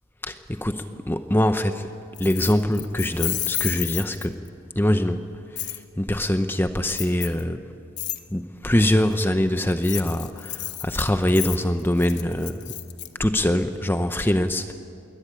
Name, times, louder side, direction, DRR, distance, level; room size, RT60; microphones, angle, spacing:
voice 1, 0.2-1.9 2.2-4.4 4.8-5.2 5.5-7.6 8.3-12.6 13.2-14.7, left 1 dB, 10° left, 8 dB, 0.7 m, -23 dB
Keys jangling, 2.2-4.5 5.6-5.8 6.9-7.4 8.0-8.2 9.7-13.1, left 15 dB, 50° left, 1.1 m, -31 dB
21.5 x 18.5 x 8.8 m, 2.5 s
head